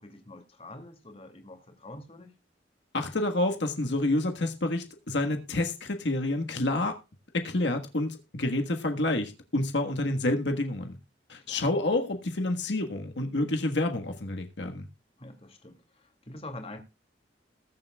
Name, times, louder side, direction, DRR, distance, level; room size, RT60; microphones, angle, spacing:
voice 1, 0.0-2.4 11.4-11.8 15.2-16.8, left 2 dB, 35° left, 2.4 m, -46 dB
voice 2, 2.9-7.0 7.3-11.0 11.3-14.8, left 2 dB, 75° left, 1.5 m, -28 dB
20.5 x 7.7 x 2.3 m
head